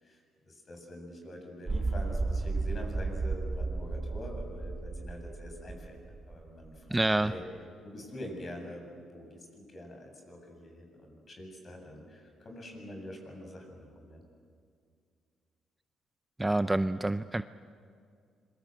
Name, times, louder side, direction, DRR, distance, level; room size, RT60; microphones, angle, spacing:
voice 1, 0.0-7.4 7.8-8.8 9.1-14.2, left 1 dB, 40° left, 3 dB, 7.8 m, -45 dB
sound 1, 1.7-6.4 6.6-6.7, right 3 dB, 30° right, 1.5 m, -33 dB
voice 2, 6.9-7.3 16.4-17.4, right 2 dB, 10° right, 12 dB, 0.5 m, -27 dB
26.5 x 23.0 x 8.1 m, 2.2 s
cardioid pair, 90°, 0 cm